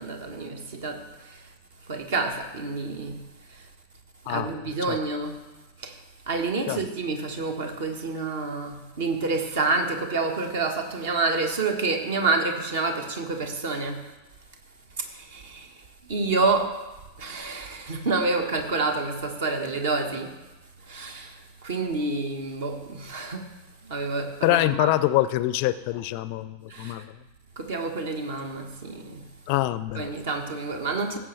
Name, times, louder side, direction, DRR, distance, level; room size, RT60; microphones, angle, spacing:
voice 1, 0.0-1.5 1.9-3.2 3.5-3.7 4.2-5.4 5.8-6.0 6.3-14.0 15.0-15.8 16.1-16.8 17.2-20.4 20.8-23.5 23.8-25.0 26.7-27.0 27.6-29.3 29.9-31.2, right 3 dB, 55° right, 5 dB, 1.5 m, -28 dB
voice 2, 24.4-27.1 29.5-30.1, left 16 dB, 45° left, 16 dB, 0.4 m, -25 dB
17.0 x 7.5 x 3.3 m, 1.1 s
figure-of-eight pair, 90°, 0 cm